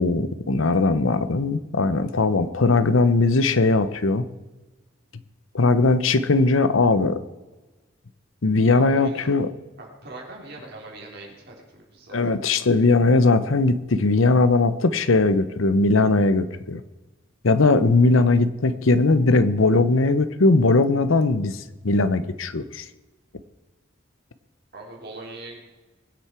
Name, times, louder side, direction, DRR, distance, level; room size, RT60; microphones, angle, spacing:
voice 1, 0.0-4.3 5.5-7.2 8.4-9.5 12.1-16.8 17.4-22.8, left 3 dB, 85° left, 13 dB, 0.8 m, -19 dB
voice 2, 8.7-9.3 9.8-12.2 24.7-25.6, right 2 dB, 55° right, -1 dB, 3.7 m, -41 dB
22.5 x 8.3 x 4.5 m, 1.2 s
head